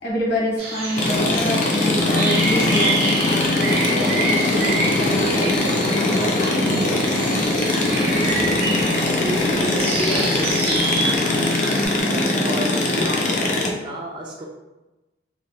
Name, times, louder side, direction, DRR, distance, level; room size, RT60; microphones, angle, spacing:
voice 1, 0.0-6.8, equal, 60° left, -5 dB, 1.0 m, -27 dB
sound 1, 0.6-11.9, right 2 dB, 60° right, 0.9 m, -27 dB
sound 2, 1.0-13.7, left 2 dB, 45° left, 0.4 m, -21 dB
sound 3, 4.5-12.0, equal, 85° left, 1.0 m, -39 dB
voice 2, 6.6-11.5 12.4-14.5, right 1 dB, 25° right, -1 dB, 0.3 m, -31 dB
3.1 x 2.0 x 2.7 m, 1.0 s
head